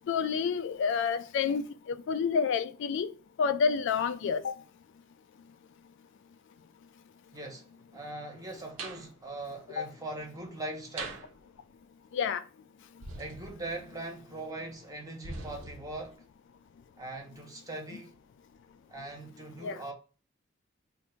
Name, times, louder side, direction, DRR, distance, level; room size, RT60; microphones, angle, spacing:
voice 1, 0.1-3.1 3.4-4.5 9.8-9.9 12.1-12.4 19.6-19.8, left 6 dB, 65° left, 0.3 m, -29 dB
voice 2, 7.3-11.2 13.2-16.2 17.0-18.1 18.9-19.9, right 2 dB, 20° right, 0.8 m, -41 dB
sound 1, 8.8-9.1 11.0-11.3 13.0-14.0 15.2-16.1, right 3 dB, 90° right, 0.8 m, -42 dB
2.7 x 2.5 x 4.2 m
head